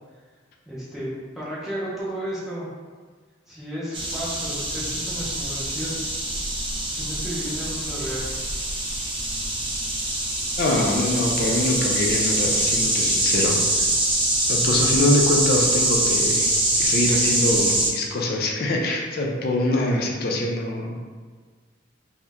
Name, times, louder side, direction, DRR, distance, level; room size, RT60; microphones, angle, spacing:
voice 1, 0.7-1.1 1.3-2.7 3.5-6.0 6.9-8.3, equal, ahead, -9 dB, 0.8 m, -33 dB
sound 1, 3.9-17.9, right 1 dB, 25° right, 0.4 m, -24 dB
voice 2, 10.6-13.6 14.5-16.5 16.8-21.1, left 1 dB, 50° left, 0 dB, 0.4 m, -24 dB
2.8 x 2.1 x 3.5 m, 1.5 s
head